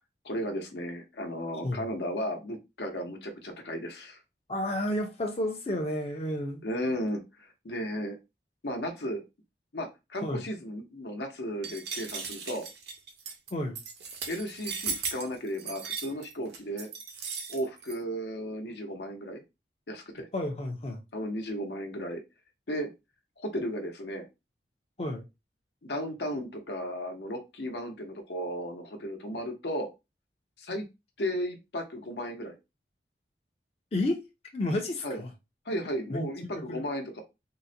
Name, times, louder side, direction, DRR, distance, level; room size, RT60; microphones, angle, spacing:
voice 1, 0.2-4.2 6.6-8.2 8.6-9.2 9.7-12.7 14.3-16.9 17.5-19.4 19.9-20.3 21.1-22.2 22.7-22.9 23.4-24.3 25.8-29.9 30.6-30.9 31.2-32.5 35.0-35.2 35.7-37.2, equal, 75° left, 0.8 m, -35 dB
voice 2, 4.5-6.6 10.2-10.5 13.5-13.8 20.3-21.0 25.0-25.2 33.9-34.2 34.5-35.3 36.1-36.8, left 1 dB, 35° left, 0.5 m, -31 dB
sound 1, 11.6-18.0, right 5 dB, 70° right, 0.7 m, -37 dB
3.7 x 2.1 x 2.6 m
head